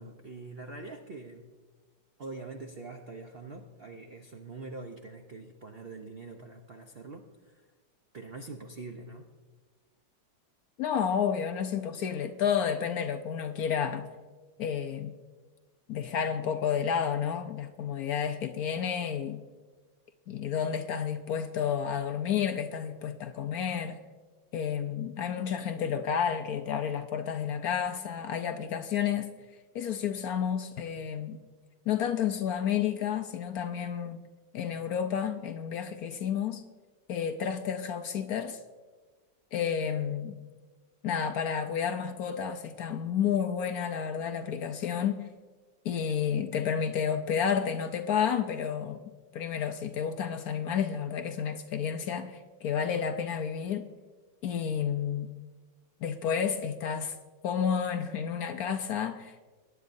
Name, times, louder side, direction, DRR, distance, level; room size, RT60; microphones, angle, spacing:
voice 1, 0.0-1.5 2.2-7.6 8.1-9.3, right 3 dB, 70° right, 0.5 m, -44 dB
voice 2, 10.8-14.1 14.6-15.2 15.9-19.4 20.3-24.0 24.5-29.3 29.7-31.4 31.9-34.2 34.5-36.6 37.1-38.6 39.5-40.4 41.0-45.3 45.8-49.0 49.3-53.9 54.4-55.3 56.0-57.2 57.4-59.3, left 8 dB, 65° left, 0.9 m, -31 dB
22.0 x 10.0 x 2.6 m
omnidirectional pair, 2.1 m